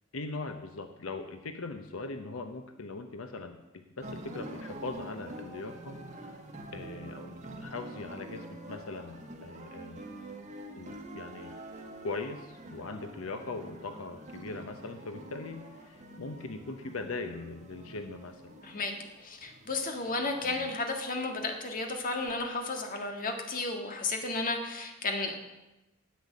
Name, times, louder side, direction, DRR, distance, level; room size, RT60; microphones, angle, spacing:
voice 1, 0.1-6.4 6.7-10.3 10.7-11.5 12.0-18.6 20.4-20.7, left 3 dB, 85° left, 7 dB, 0.9 m, -40 dB
sound 1, 4.0-22.3, right 1 dB, 35° right, 1.7 m, -47 dB
voice 2, 19.2-25.3, left 3 dB, 40° left, 3 dB, 1.7 m, -33 dB
10.5 x 8.5 x 8.4 m, 1.0 s
head